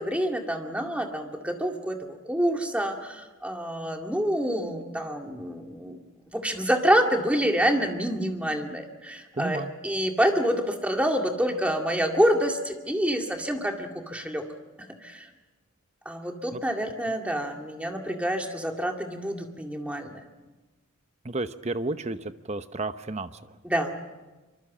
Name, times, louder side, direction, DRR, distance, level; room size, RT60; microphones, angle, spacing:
voice 1, 0.0-6.0 6.3-14.4 15.0-15.3 16.1-20.2 23.6-23.9, equal, 5° right, 3 dB, 2.1 m, -27 dB
voice 2, 9.3-9.7 16.5-16.6 21.2-23.6, right 2 dB, 30° right, 11 dB, 0.9 m, -32 dB
24.5 x 24.0 x 7.4 m, 1.2 s
head